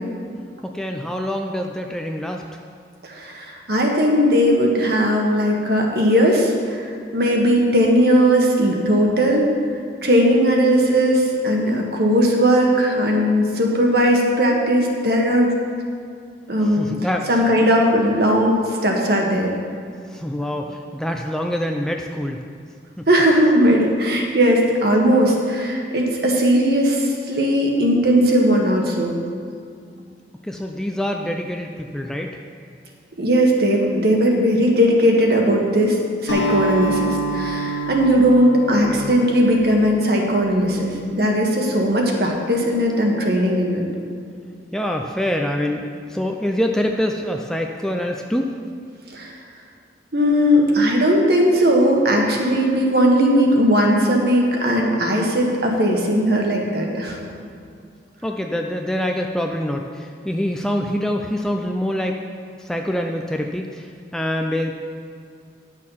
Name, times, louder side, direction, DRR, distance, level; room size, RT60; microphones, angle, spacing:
voice 1, 0.6-2.6 16.6-17.4 20.1-22.4 23.0-23.1 30.4-32.4 38.9-39.1 44.7-48.5 58.2-62.2 62.6-64.7, equal, 5° left, 2 dB, 0.4 m, -25 dB
voice 2, 3.0-9.4 10.0-15.5 16.5-16.9 17.3-19.5 23.1-29.1 33.2-43.8 49.1-49.3 50.1-57.2, equal, 60° right, 0 dB, 1.5 m, -18 dB
Acoustic guitar, 36.3-40.8, right 2 dB, 90° left, 1.6 m, -27 dB
11.0 x 6.5 x 5.7 m, 2.3 s
head